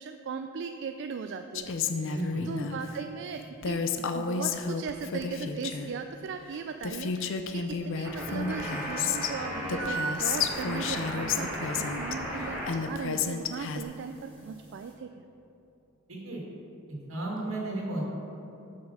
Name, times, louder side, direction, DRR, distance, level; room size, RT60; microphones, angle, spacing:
voice 1, 0.0-15.2, right 5 dB, 60° right, 7 dB, 0.3 m, -38 dB
Female speech woman speaking, 1.5-2.8 3.6-5.9 6.5-6.6 6.8-9.3 9.7-12.1 12.7-13.8, left 5 dB, 65° left, 0.5 m, -31 dB
voice 2, 2.1-2.5 16.1-16.4 17.1-18.0, right 2 dB, 80° right, -2 dB, 2.1 m, -33 dB
sound 1, 8.0-12.7 12.9-14.9, right 1 dB, 10° right, 2.1 m, -36 dB
8.0 x 5.4 x 6.5 m, 2.9 s
head